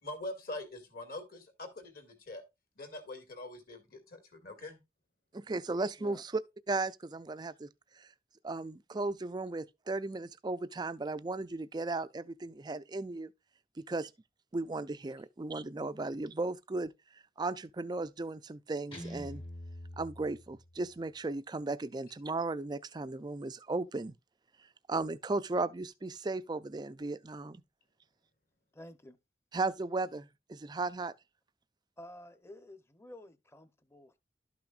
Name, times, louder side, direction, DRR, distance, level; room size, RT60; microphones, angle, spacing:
voice 1, 0.0-2.4 2.8-4.8, left 2 dB, 55° left, 2.2 m, -44 dB
voice 2, 5.3-6.4 6.7-7.7 7.9-8.1 8.4-13.3 13.8-14.1 14.5-19.4 20.0-24.1 24.9-27.6 29.5-31.1, right 3 dB, 25° right, 0.4 m, -36 dB
Guitar, 18.9-21.0, equal, 30° left, 1.4 m, -45 dB
voice 3, 28.7-29.2 32.0-34.2, left 1 dB, 15° left, 0.8 m, -51 dB
12.0 x 6.0 x 2.5 m
head